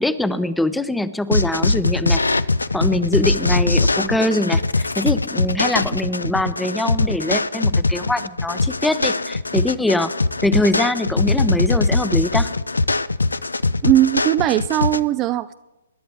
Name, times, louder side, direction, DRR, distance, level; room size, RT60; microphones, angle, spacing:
voice 1, 0.0-2.2 2.7-10.1 10.4-12.5, left 1 dB, 5° left, 14 dB, 0.7 m, -23 dB
sound 1, 1.3-15.0, left 3 dB, 85° left, 0.5 m, -21 dB
voice 2, 13.8-15.5, right 14 dB, 25° right, 12 dB, 0.4 m, -18 dB
25.0 x 11.0 x 3.5 m, 0.99 s
figure-of-eight pair, 130°, 0 cm